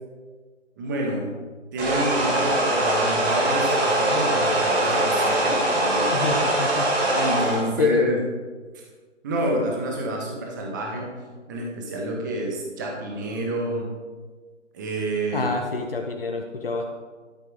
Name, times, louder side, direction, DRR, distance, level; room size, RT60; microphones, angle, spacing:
voice 1, 0.8-1.3 1.7-6.3 7.0-8.2 9.2-11.1 11.5-13.9 14.7-15.5, right 1 dB, 15° right, 0 dB, 1.6 m, -28 dB
sound 1, 1.8-7.6, right 1 dB, 55° right, 4.3 m, -22 dB
voice 2, 6.1-6.9 7.8-8.0 15.3-16.9, left 5 dB, 45° left, 3 dB, 1.3 m, -26 dB
13.0 x 12.5 x 3.9 m, 1.4 s
figure-of-eight pair, 160°, 38 cm